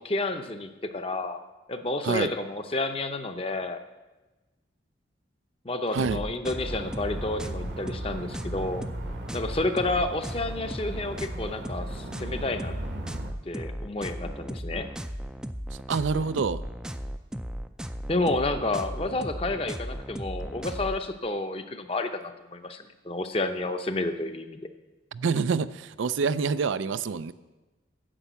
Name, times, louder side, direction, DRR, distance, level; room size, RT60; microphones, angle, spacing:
voice 1, 0.0-1.4 1.7-3.8 5.6-8.9 9.3-12.7 13.5-14.9 18.1-24.6, left 2 dB, 30° left, 7 dB, 0.7 m, -30 dB
sound 1, 6.0-21.0, equal, 5° right, 0.3 m, -36 dB
sound 2, 6.6-13.3, right 1 dB, 70° right, 1.2 m, -39 dB
voice 2, 15.9-16.6 25.1-27.3, right 5 dB, 90° right, 14 dB, 0.4 m, -27 dB
10.0 x 7.0 x 8.2 m, 1.2 s
head